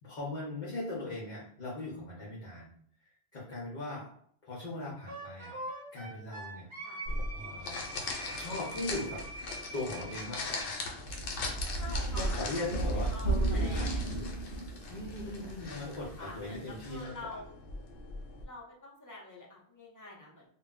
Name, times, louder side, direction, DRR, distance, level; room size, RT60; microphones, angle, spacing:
voice 1, 0.0-2.7 3.3-4.1 4.4-5.6 5.9-6.7 7.3-7.8 8.4-9.2 9.7-10.8 11.8-14.4 14.9-17.4, left 2 dB, 50° left, -5 dB, 0.8 m, -39 dB
Wind instrument woodwind instrument, 5.1-10.7, right 2 dB, 30° right, 0.7 m, -43 dB
sound 1, 7.1-18.4, left 3 dB, 85° left, 0.9 m, -41 dB
sound 2, 11.1-17.0, right 2 dB, 70° right, 1.1 m, -33 dB
voice 2, 11.8-12.7 13.1-14.0 15.7-17.5 18.4-20.4, left 2 dB, 20° left, -4 dB, 0.5 m, -47 dB
2.2 x 2.1 x 3.6 m, 0.62 s
omnidirectional pair, 1.2 m